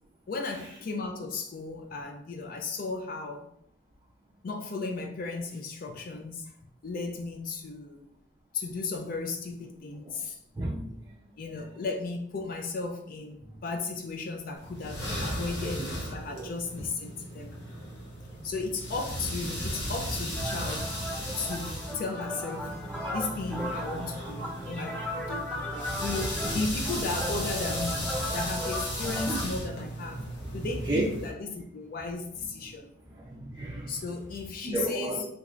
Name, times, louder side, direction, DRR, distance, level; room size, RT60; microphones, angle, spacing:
voice 1, 0.3-3.5 4.4-6.5 6.8-8.1 8.5-10.4 11.4-17.5 18.4-20.9 21.4-22.8 23.1-25.5 26.0-32.9 33.9-35.3, left 3 dB, 50° left, 4 dB, 0.4 m, -35 dB
voice 2, 10.6-11.2 15.1-15.2 15.6-15.8 16.3-16.5 29.3-29.5 30.5-31.1 33.1-34.0 34.6-35.2, right 2 dB, 20° right, -4 dB, 0.4 m, -33 dB
sound 1, 14.6-31.3, equal, 70° left, 0.9 m, -36 dB
sound 2, 20.3-29.4, equal, 5° left, 0.8 m, -37 dB
3.4 x 3.1 x 2.4 m, 0.70 s
head